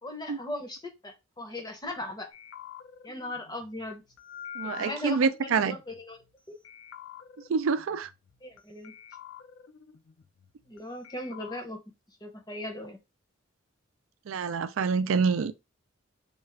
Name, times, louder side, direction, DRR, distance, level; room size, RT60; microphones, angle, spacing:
voice 1, 0.0-2.3 3.0-4.0 4.8-6.2 6.5-6.6 8.4-8.9 10.7-11.8 12.2-13.0, left 1 dB, 20° left, 0.6 m, -38 dB
sound 1, 2.3-6.3 6.6-8.6 8.8-10.8 11.0-11.6, left 9 dB, 75° left, 0.5 m, -46 dB
voice 2, 4.6-5.8 7.5-8.1 14.3-15.6, right 5 dB, 90° right, 0.4 m, -26 dB
3.7 x 2.4 x 3.2 m
head